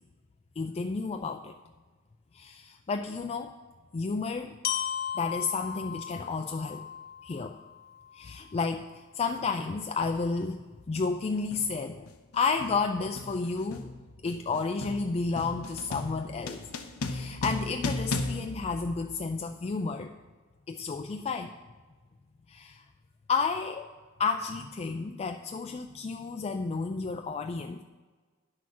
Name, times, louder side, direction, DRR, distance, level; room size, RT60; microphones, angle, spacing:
voice 1, 0.6-1.5 2.3-3.5 3.9-4.5 5.1-6.8 7.2-7.6 8.1-10.6 10.9-12.1 12.3-16.6 17.1-20.2 20.7-21.5 22.5-22.8 23.3-23.9 24.2-27.8, left 4 dB, 30° left, 5 dB, 0.3 m, -31 dB
Glockenspiel, 4.6-8.6, left 9 dB, 45° left, 0.7 m, -36 dB
sound 1, 9.3-9.5 10.4-10.7 11.0-19.5, left 2 dB, 80° left, 0.8 m, -37 dB
10.5 x 6.2 x 6.0 m, 1.3 s
head